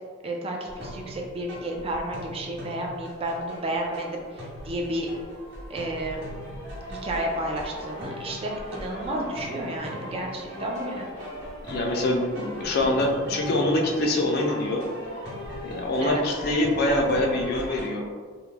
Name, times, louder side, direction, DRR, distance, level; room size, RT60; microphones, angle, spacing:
voice 1, 0.2-5.1 5.7-6.2 6.9-11.1 16.0-16.2, right 1 dB, 30° right, 0 dB, 0.4 m, -31 dB
sound 1, 0.6-17.8, equal, 85° right, 1.1 m, -38 dB
voice 2, 11.7-14.8 15.6-18.0, left 1 dB, 55° left, 1 dB, 0.4 m, -24 dB
2.3 x 2.1 x 3.1 m, 1.5 s
head